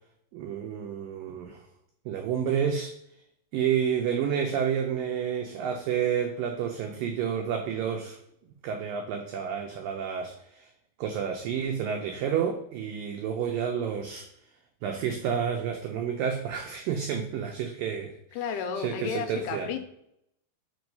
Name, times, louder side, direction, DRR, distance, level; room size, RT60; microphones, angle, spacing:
voice 1, 0.3-1.6 2.1-2.9 3.5-8.2 8.6-10.7 11.0-14.3 14.8-18.2 18.8-19.7, right 8 dB, 90° right, 4 dB, 1.9 m, -30 dB
voice 2, 18.3-19.8, left 7 dB, 85° left, 7 dB, 2.6 m, -32 dB
5.2 x 4.7 x 5.2 m, 0.75 s
omnidirectional pair, 4.7 m